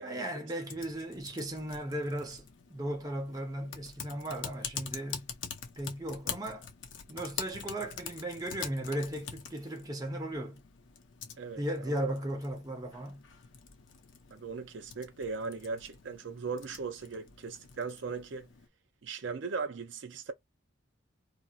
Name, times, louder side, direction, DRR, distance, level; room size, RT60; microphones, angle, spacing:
voice 1, 0.0-5.3 5.8-6.7 7.1-10.6 11.6-13.2, right 1 dB, 20° right, 0.6 m, -36 dB
Typing, 0.6-18.7, left 7 dB, 65° left, 0.6 m, -45 dB
voice 2, 11.4-12.1 14.3-18.5 19.0-20.3, right 4 dB, 65° right, 0.5 m, -38 dB
4.1 x 2.0 x 2.3 m
head